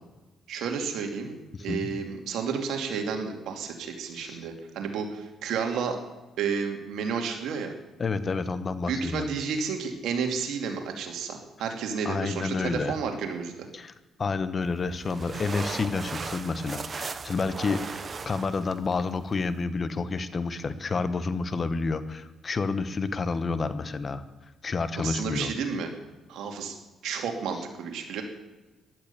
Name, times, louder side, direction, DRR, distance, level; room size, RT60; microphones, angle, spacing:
voice 1, 0.5-1.3 1.6-6.0 6.4-7.7 8.9-13.5 25.0-25.9 26.3-26.8 27.0-28.2, right 6 dB, 80° right, 4 dB, 2.6 m, -31 dB
voice 2, 1.5-1.9 4.1-4.4 8.0-9.3 12.0-13.0 13.7-13.9 14.2-24.2 24.6-25.5, left 4 dB, 40° left, 13 dB, 1.2 m, -29 dB
sound 1, 14.6-19.6, right 5 dB, 40° right, 1.0 m, -38 dB
15.5 x 12.0 x 6.9 m, 1.1 s
cardioid pair, 90°, 0 cm